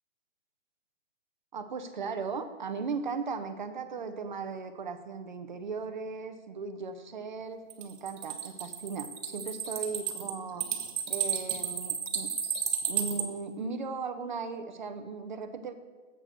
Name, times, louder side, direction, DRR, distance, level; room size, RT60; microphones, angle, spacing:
voice 1, 1.5-10.7 11.1-12.3 12.9-15.7, right 4 dB, 40° right, 8 dB, 0.7 m, -37 dB
sound 1, 7.7-13.2, right 8 dB, 70° right, 1.6 m, -32 dB
7.6 x 6.2 x 6.6 m, 1.4 s
hypercardioid pair, 170°, 37 cm